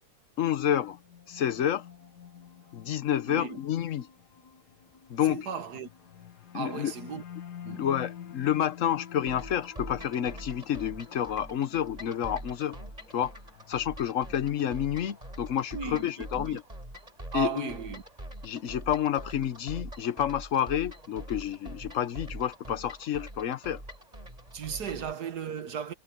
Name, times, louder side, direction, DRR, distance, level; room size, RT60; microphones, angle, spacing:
voice 1, 0.4-1.0 1.3-1.8 2.7-4.1 5.1-5.5 6.5-6.9 7.7-12.8 13.1-13.3 13.7-16.6 17.3-17.7 18.4-23.8, left 10 dB, 60° left, 1.1 m, -29 dB
sound 1, 0.7-16.0, left 9 dB, 90° left, 1.9 m, -49 dB
voice 2, 3.3-3.6 5.3-5.9 6.5-7.2 7.6-7.9 15.7-16.6 17.3-18.0 24.5-25.9, right 6 dB, 85° right, 2.0 m, -36 dB
sound 2, 9.3-25.1, right 1 dB, 25° right, 5.3 m, -44 dB
omnidirectional pair, 1.7 m